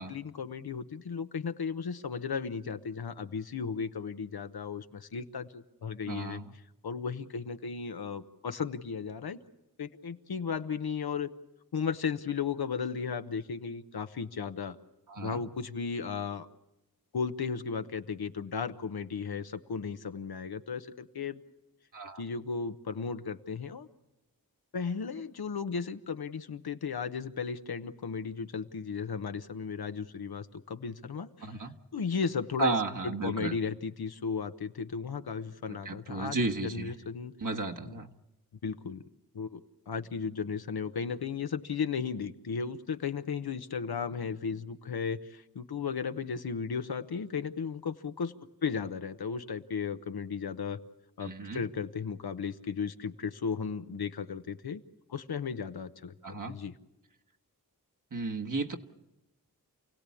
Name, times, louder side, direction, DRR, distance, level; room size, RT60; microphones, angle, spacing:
voice 1, 0.0-6.4 6.8-9.4 9.8-11.3 11.7-14.8 15.2-16.5 17.1-21.4 22.2-23.9 24.7-31.5 31.9-32.7 33.0-36.4 36.6-37.3 37.9-38.0 38.6-39.0 39.3-39.6 39.9-48.3 48.6-50.8 51.2-54.8 55.1-56.7, left 6 dB, 80° left, 9 dB, 1.0 m, -35 dB
voice 2, 6.0-6.5 15.1-15.4 21.9-22.2 31.4-31.7 32.6-33.5 35.7-36.9 37.4-38.1 51.2-51.6 56.2-56.6 58.1-58.8, right 3 dB, 55° right, 3 dB, 1.5 m, -34 dB
28.0 x 17.0 x 8.5 m, 0.97 s
cardioid pair, 40°, 37 cm